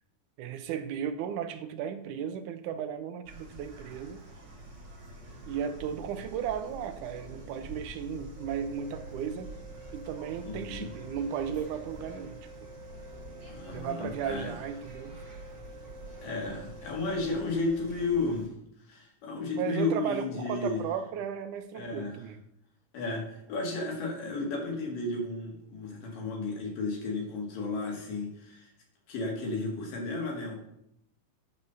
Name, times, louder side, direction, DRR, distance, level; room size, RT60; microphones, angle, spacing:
voice 1, 0.4-4.2 5.5-9.5 9.9-12.7 13.7-15.1 19.5-22.4, right 8 dB, 75° right, 9 dB, 2.0 m, -35 dB
sound 1, 3.2-18.5, right 1 dB, 40° right, 3.1 m, -47 dB
sound 2, 8.3-18.0, right 3 dB, 70° left, 3.0 m, -50 dB
voice 2, 10.4-10.9 13.5-14.5 16.2-18.5 18.9-20.8 21.8-22.2 22.9-28.7 29.1-30.5, left 3 dB, 85° left, 0 dB, 3.5 m, -33 dB
9.4 x 4.2 x 6.9 m, 0.77 s
omnidirectional pair, 3.8 m